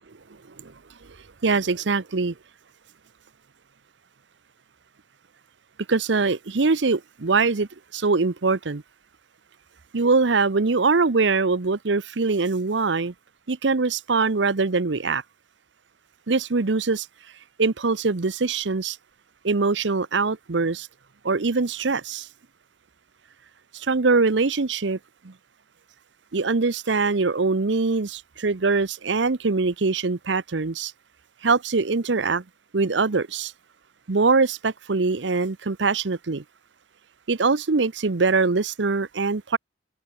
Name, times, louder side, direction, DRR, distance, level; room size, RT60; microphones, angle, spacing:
voice 1, 1.4-2.3 5.9-8.8 9.9-13.1 13.5-15.2 16.3-17.1 17.6-19.0 19.4-20.9 21.2-22.3 23.7-25.0 25.2-25.3 26.3-30.9 31.4-32.4 32.7-33.5 34.1-36.4 37.3-39.6, right 4 dB, 70° right, 0.8 m, -23 dB
head